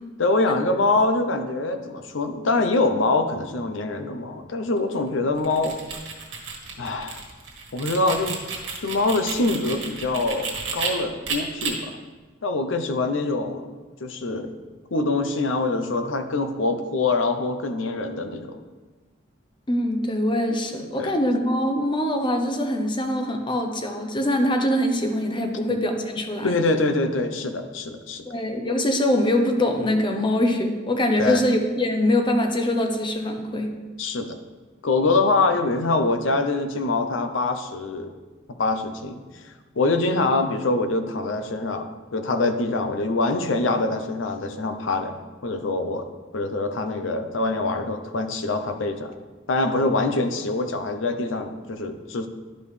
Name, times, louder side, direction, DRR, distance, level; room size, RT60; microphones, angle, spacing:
voice 1, 0.2-5.8 6.8-7.2 7.7-8.4 8.8-12.0 12.4-13.6 14.0-14.5 14.9-18.6 20.7-21.1 25.7-25.8 26.4-28.3 31.2-31.4 34.0-34.4 34.8-38.1 38.5-39.2 39.8-46.1 46.3-49.1 49.5-52.3, left 3 dB, 85° left, 7 dB, 0.7 m, -24 dB
sound 1, 5.4-10.9 11.3-11.7, right 5 dB, 85° right, 1.5 m, -32 dB
voice 2, 19.7-26.5 28.3-33.7, left 1 dB, 25° left, 4 dB, 0.7 m, -23 dB
11.5 x 5.2 x 3.3 m, 1.3 s
head